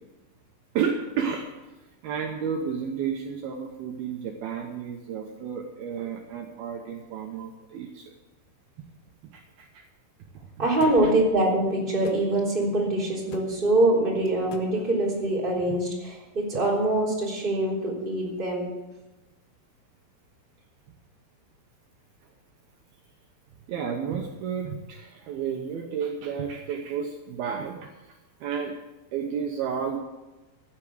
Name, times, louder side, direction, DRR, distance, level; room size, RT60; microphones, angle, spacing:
voice 1, 0.7-1.5 2.0-8.1 9.3-9.8 10.6-11.1 15.7-15.8 23.7-27.9 28.4-28.7 29.1-30.0, right 7 dB, 85° right, 2 dB, 2.1 m, -32 dB
voice 2, 10.6-18.6, right 1 dB, 15° right, -4 dB, 2.8 m, -24 dB
sound 1, 10.8-11.0 12.0-12.2 13.3-13.5 14.5-14.7, left 7 dB, 80° left, 2.1 m, -40 dB
15.0 x 7.5 x 7.9 m, 1.1 s
omnidirectional pair, 5.8 m